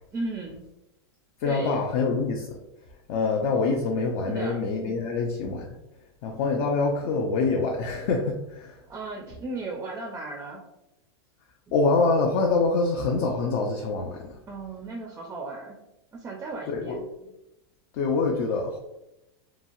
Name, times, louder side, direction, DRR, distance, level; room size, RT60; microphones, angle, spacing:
voice 1, 0.1-0.6 1.4-1.8 4.2-4.6 8.9-10.6 11.7-11.8 14.5-15.8 16.1-17.0, right 3 dB, 15° right, 0 dB, 0.4 m, -35 dB
voice 2, 1.4-2.6 3.1-5.7 6.2-8.8 11.7-14.4 16.7-17.0 17.9-18.8, left 3 dB, 50° left, 1 dB, 0.5 m, -25 dB
2.9 x 2.3 x 2.6 m, 0.90 s
supercardioid pair, 135°, 14 cm